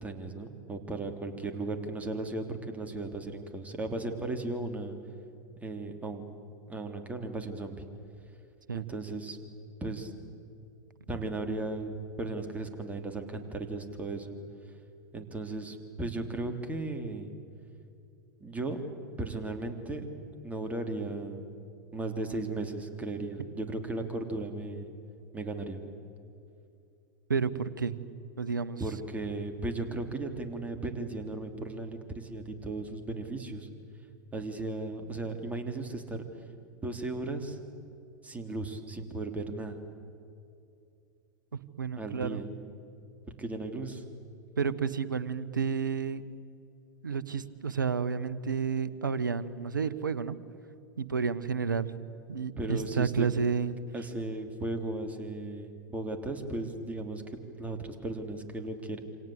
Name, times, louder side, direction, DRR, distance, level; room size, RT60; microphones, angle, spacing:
voice 1, 0.0-5.0 5.6-6.2 6.7-7.8 8.7-9.4 9.8-10.1 11.1-14.3 15.1-17.3 18.4-18.8 19.2-20.0 20.4-21.6 21.9-24.9 25.3-25.8 28.8-33.7 34.3-36.2 36.8-37.6 38.2-39.8 42.0-42.5 43.4-44.0 52.6-53.3 53.9-59.0, right 2 dB, 15° right, 5 dB, 3.3 m, -36 dB
voice 2, 27.3-28.0 28.4-28.8 41.8-42.4 44.6-46.2 47.0-50.4 51.0-51.9 52.3-53.8, right 5 dB, 80° right, 15 dB, 1.2 m, -30 dB
28.0 x 26.5 x 8.0 m, 2.6 s
figure-of-eight pair, 85°, 11 cm